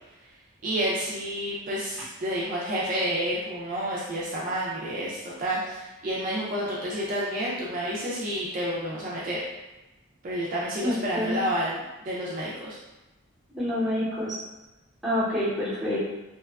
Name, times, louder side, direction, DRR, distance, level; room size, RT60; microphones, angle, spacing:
voice 1, 0.6-9.4 10.2-12.8, equal, 40° right, -6 dB, 0.4 m, -30 dB
voice 2, 10.8-11.4 13.6-14.4 15.0-16.1, left 1 dB, ahead, -11 dB, 0.8 m, -27 dB
2.9 x 2.2 x 2.3 m, 1.1 s
head